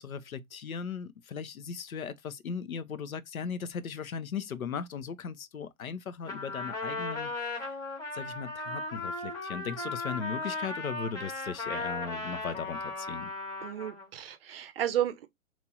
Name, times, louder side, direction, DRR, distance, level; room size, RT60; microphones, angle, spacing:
voice 1, 0.0-7.7 8.1-13.3, left 6 dB, 80° left, 0.6 m, -38 dB
Trumpet, 6.2-14.1, left 2 dB, 10° left, 1.1 m, -36 dB
voice 2, 13.6-15.3, right 11 dB, 45° right, 0.6 m, -32 dB
3.0 x 2.5 x 3.9 m
figure-of-eight pair, 110°, 42 cm